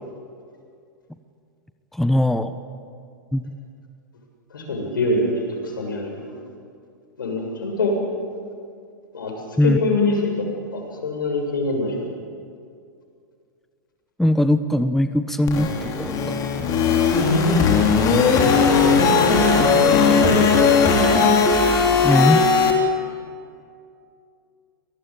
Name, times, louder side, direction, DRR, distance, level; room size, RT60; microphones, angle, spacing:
voice 1, 1.9-2.5 3.3-3.5 9.6-9.8 14.2-16.4 22.0-22.4, left 1 dB, ahead, 10 dB, 1.0 m, -20 dB
voice 2, 4.5-5.3 5.6-6.4 7.2-8.0 9.1-9.3 9.6-10.3 10.7-12.1 18.8-20.8, left 2 dB, 85° left, 1 dB, 7.3 m, -25 dB
sound 1, 15.5-22.7, left 5 dB, 35° left, 4.0 m, -17 dB
25.5 x 19.0 x 9.0 m, 2.3 s
hypercardioid pair, 110°, 11 cm